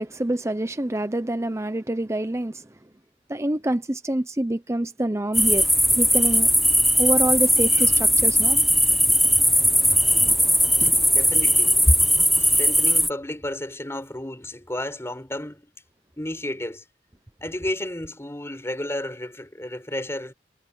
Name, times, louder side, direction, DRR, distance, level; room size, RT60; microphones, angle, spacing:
voice 1, 0.0-2.7 3.3-5.7 6.0-6.5 7.0-8.6 10.1-10.4 10.8-11.0, right 1 dB, 15° right, 0.9 m, -26 dB
sound 1, 5.3-13.1, equal, ahead, 1.2 m, -19 dB
voice 2, 11.0-12.0 12.4-15.6 16.2-16.8 17.4-20.3, left 1 dB, 15° left, 4.9 m, -30 dB
head